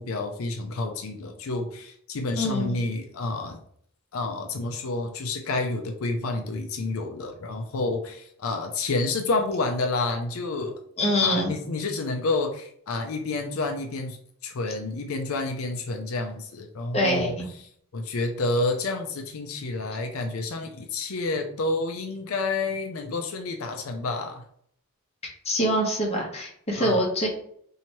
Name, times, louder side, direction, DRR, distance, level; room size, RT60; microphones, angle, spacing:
voice 1, 0.0-3.6 4.1-10.7 11.2-17.4 17.9-24.4 26.8-27.0, left 3 dB, 75° left, 4 dB, 0.5 m, -29 dB
voice 2, 2.4-2.7 11.0-11.5 16.9-17.4 25.4-27.3, equal, 30° left, 0 dB, 0.9 m, -24 dB
3.0 x 2.8 x 4.3 m, 0.65 s
head